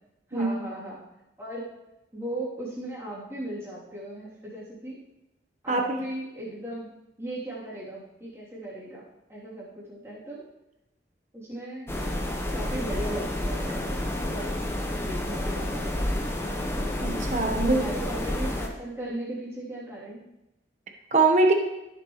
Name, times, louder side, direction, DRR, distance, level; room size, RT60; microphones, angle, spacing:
voice 1, 0.3-1.0 1.4-1.7 2.1-5.0 5.6-6.9 7.2-10.4 11.3-11.9 12.5-14.0 14.3-14.5 15.0-16.3 17.6-20.2, right 1 dB, 15° right, -7 dB, 3.3 m, -37 dB
voice 2, 5.7-6.0 17.0-17.8 21.1-21.5, right 3 dB, 40° right, 3 dB, 1.2 m, -22 dB
sound 1, 11.9-18.7, left 1 dB, 15° left, 0.8 m, -30 dB
16.0 x 7.2 x 3.2 m, 0.93 s
head